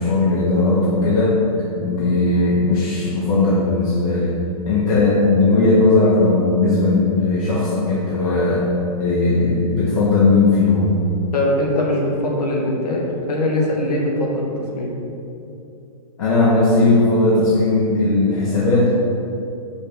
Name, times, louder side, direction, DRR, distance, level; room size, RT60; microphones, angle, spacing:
voice 1, 0.0-1.4 1.8-4.4 4.7-8.7 9.0-11.0 16.2-18.9, left 2 dB, 65° left, -6 dB, 1.1 m, -17 dB
voice 2, 11.3-14.5 14.8-15.0, left 1 dB, 85° left, -2 dB, 1.4 m, -21 dB
5.6 x 5.1 x 3.4 m, 2.7 s
hypercardioid pair, 150°, 20 cm